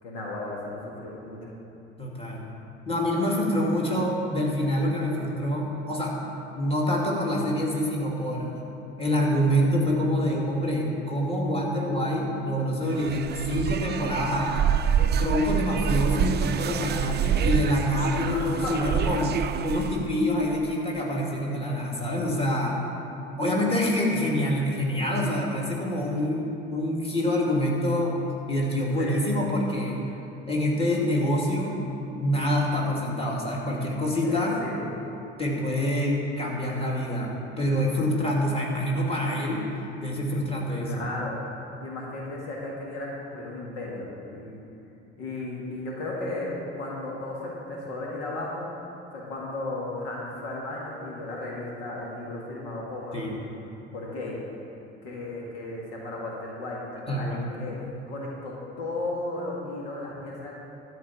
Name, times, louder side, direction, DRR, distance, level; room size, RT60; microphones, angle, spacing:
voice 1, 0.0-1.5 18.3-18.9 29.0-29.2 34.2-34.9 40.7-41.3 41.8-44.6 45.2-48.7 49.1-53.3 53.9-54.4 55.0-60.5, left 2 dB, 70° left, -3 dB, 2.0 m, -35 dB
voice 2, 2.0-2.5 2.9-6.2 6.5-8.5 9.0-14.6 15.0-19.3 19.6-22.8 23.4-28.2 28.5-30.0 30.5-31.8 32.2-34.6 35.4-39.6 40.0-41.1 53.1-53.4 57.1-57.7, left 1 dB, 15° left, -3 dB, 2.5 m, -26 dB
sound 1, 12.9-20.1, right 8 dB, 30° right, 0.5 m, -27 dB
13.0 x 4.6 x 8.7 m, 2.8 s
figure-of-eight pair, 55°, 34 cm